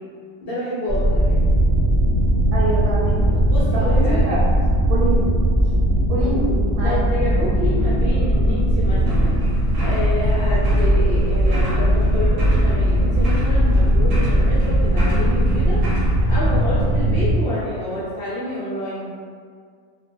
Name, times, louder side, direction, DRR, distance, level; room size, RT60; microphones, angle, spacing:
voice 1, 0.4-1.5 3.3-4.4 6.8-9.4 9.8-15.8 16.3-19.1, left 1 dB, 65° left, -11 dB, 0.6 m, -28 dB
sound 1, 0.9-17.3, equal, 25° right, 0.5 m, -18 dB
voice 2, 2.5-3.3 3.7-4.4 4.9-5.3 6.1-6.9, right 2 dB, 85° right, -6 dB, 1.1 m, -25 dB
sound 2, 9.1-16.7, equal, 65° right, 0.9 m, -30 dB
2.3 x 2.2 x 2.5 m, 2.1 s
omnidirectional pair, 1.5 m